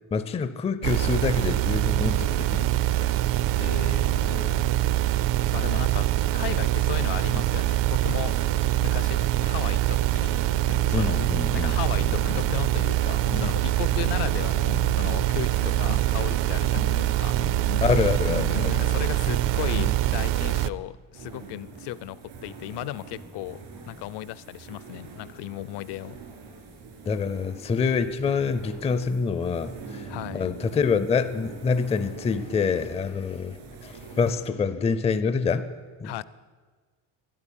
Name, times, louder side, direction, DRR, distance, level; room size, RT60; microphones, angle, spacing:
voice 1, 0.1-2.7 3.0-3.1 10.9-11.7 17.8-18.7 27.1-30.0 30.3-35.7 36.0-36.2, left 5 dB, 15° left, 12 dB, 0.4 m, -26 dB
sound 1, 0.8-20.7, right 14 dB, 65° right, 0.7 m, -24 dB
voice 2, 3.6-4.7 5.5-6.1 6.3-8.3 8.8-10.4 10.9-11.2 11.5-17.4 18.7-26.2 30.1-30.5 36.0-36.2, left 14 dB, 60° left, 19 dB, 0.6 m, -36 dB
sound 2, 10.5-11.6 12.0-12.8 13.2-16.2 16.5-19.9, left 8 dB, 85° left, 1.9 m, -38 dB
sound 3, 21.1-34.4, right 4 dB, 85° right, 4.2 m, -44 dB
12.5 x 11.5 x 9.9 m, 1.5 s
cardioid pair, 165°, 47 cm